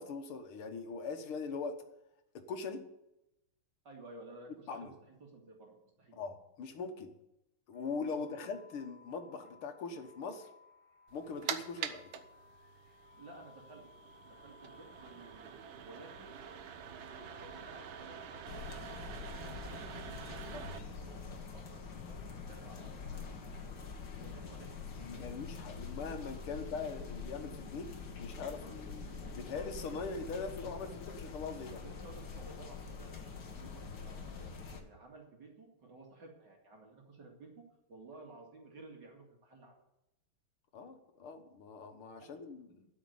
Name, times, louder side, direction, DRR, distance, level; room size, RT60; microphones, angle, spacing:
voice 1, 0.0-1.8 2.3-2.8 4.7-5.0 6.1-7.1 7.7-10.5 11.1-12.2 20.5-20.7 25.0-27.9 28.2-29.1 29.3-31.8 40.7-42.9, left 4 dB, 85° left, 7 dB, 2.2 m, -41 dB
voice 2, 3.8-6.2 8.3-8.5 13.2-13.8 14.2-16.3 17.0-25.2 31.8-37.5 37.9-39.7 42.2-42.3, right 2 dB, 55° right, 0 dB, 2.8 m, -55 dB
sound 1, 7.7-19.0, left 4 dB, 15° right, 6.0 m, -60 dB
sound 2, 11.1-20.8, right 8 dB, 70° right, 1.7 m, -46 dB
sound 3, 18.5-34.8, left 5 dB, 55° left, 1.9 m, -45 dB
12.5 x 5.9 x 9.5 m, 0.88 s
omnidirectional pair, 2.3 m